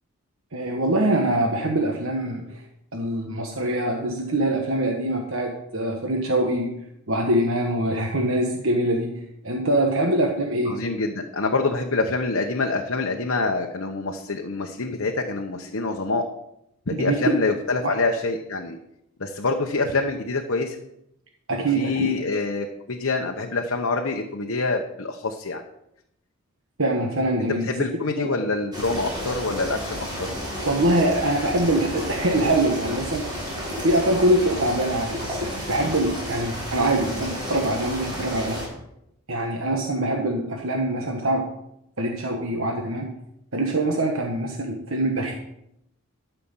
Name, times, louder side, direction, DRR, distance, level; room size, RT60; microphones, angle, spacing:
voice 1, 0.5-2.6 2.9-6.8 7.1-10.8 16.9-17.4 17.8-18.0 21.5-22.1 26.8-27.9 28.2-28.3 30.6-33.5 33.8-38.6 39.3-41.5 42.0-43.1 43.5-45.3, right 1 dB, 65° right, 1 dB, 1.3 m, -24 dB
voice 2, 10.7-16.2 16.9-18.8 19.2-20.8 21.7-25.6 27.4-30.3, left 3 dB, 60° left, 2 dB, 0.9 m, -26 dB
sound 1, 28.7-38.7, equal, 20° right, 4.6 m, -32 dB
12.5 x 5.9 x 7.2 m, 0.82 s
head